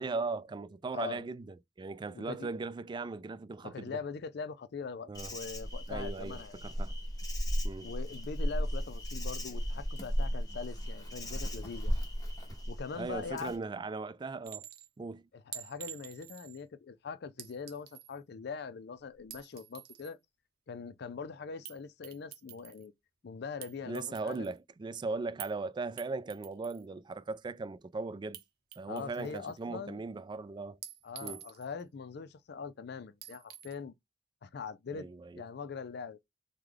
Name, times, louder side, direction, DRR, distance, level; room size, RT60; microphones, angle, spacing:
voice 1, 0.0-4.0 5.1-5.3 5.9-6.9 7.6-7.9 13.0-14.7 15.0-15.3 23.8-28.4 28.8-30.8 31.2-31.4 34.9-35.4, right 3 dB, 25° right, 0.3 m, -38 dB
voice 2, 2.1-2.5 3.6-6.6 7.8-11.9 12.7-13.5 15.3-20.2 20.7-22.9 23.2-24.5 28.9-30.0 31.0-33.9 34.4-35.1 35.4-36.2, left 5 dB, 65° left, 0.4 m, -42 dB
Insect, 5.1-13.6, equal, 20° left, 1.1 m, -35 dB
Chink clink, 14.4-14.9 15.5-16.6 17.4-18.1 19.1-20.1 21.6-21.8 22.0-22.9 23.6-24.6 25.4-25.6 26.0-26.8 28.3-28.4 28.7-29.6 30.8-31.8 33.2-33.8, right 11 dB, 60° right, 0.7 m, -47 dB
3.2 x 2.2 x 3.7 m
head